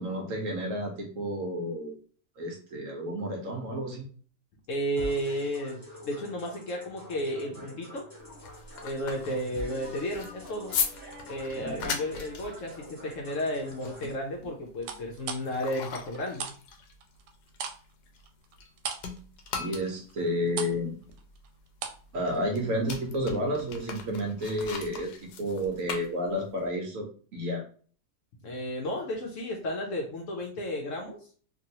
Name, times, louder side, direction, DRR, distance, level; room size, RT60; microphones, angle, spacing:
voice 1, 0.0-1.9 2.4-4.1 11.6-12.0 19.6-20.9 22.1-25.1 25.4-27.1 27.3-27.6, equal, 60° right, 1 dB, 1.0 m, -31 dB
voice 2, 4.7-5.8 6.0-8.1 8.8-10.7 11.3-16.5 28.4-31.2, equal, 65° left, 0 dB, 0.8 m, -33 dB
sound 1, 5.0-14.1, left 1 dB, 10° left, 1.0 m, -46 dB
sound 2, 8.2-18.7 19.0-26.7, left 6 dB, 90° left, 1.2 m, -39 dB
sound 3, 10.4-12.1 12.6-13.1 14.8-16.6 16.8-22.1 22.3-22.5, right 7 dB, 85° right, 1.2 m, -40 dB
2.9 x 2.6 x 2.7 m, 0.43 s
omnidirectional pair, 1.7 m